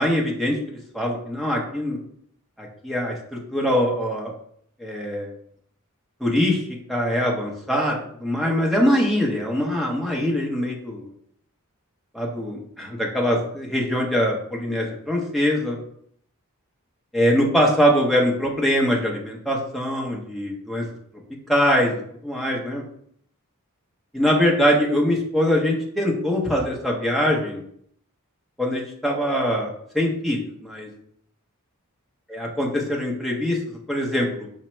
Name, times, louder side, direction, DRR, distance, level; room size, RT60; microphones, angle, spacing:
voice 1, 0.0-2.0 2.6-4.3 4.8-5.3 6.2-11.1 12.1-15.8 17.1-20.8 21.5-21.9 22.2-22.8 24.1-27.6 28.6-30.9 32.3-34.5, equal, ahead, -2 dB, 0.7 m, -23 dB
5.0 x 2.1 x 4.3 m, 0.67 s
head